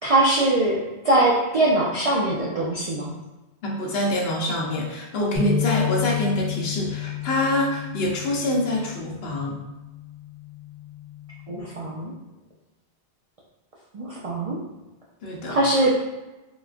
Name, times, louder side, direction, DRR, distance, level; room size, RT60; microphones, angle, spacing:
voice 1, 0.0-3.1 11.5-12.1 13.9-14.6 15.5-16.0, right 2 dB, 60° right, -5 dB, 0.3 m, -22 dB
voice 2, 3.6-9.6 15.2-15.6, left 1 dB, 65° left, -2 dB, 0.9 m, -25 dB
sound 1, 5.4-11.6, left 9 dB, 35° left, 1.0 m, -31 dB
4.0 x 2.2 x 2.4 m, 1.1 s
omnidirectional pair, 1.1 m